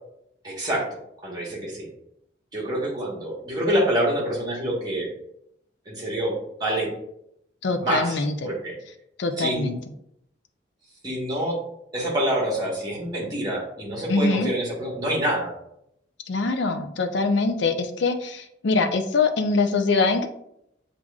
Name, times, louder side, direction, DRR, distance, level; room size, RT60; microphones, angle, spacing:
voice 1, 0.4-0.9 1.2-1.9 2.5-5.1 5.9-6.3 6.6-6.9 7.8-8.7 9.4-9.7 11.0-11.6 11.9-15.5, right 1 dB, 20° right, -4 dB, 1.3 m, -26 dB
voice 2, 7.6-8.5 9.2-9.8 14.1-14.5 16.3-20.3, left 3 dB, 70° left, 6 dB, 0.5 m, -23 dB
7.2 x 2.5 x 2.4 m, 0.77 s
head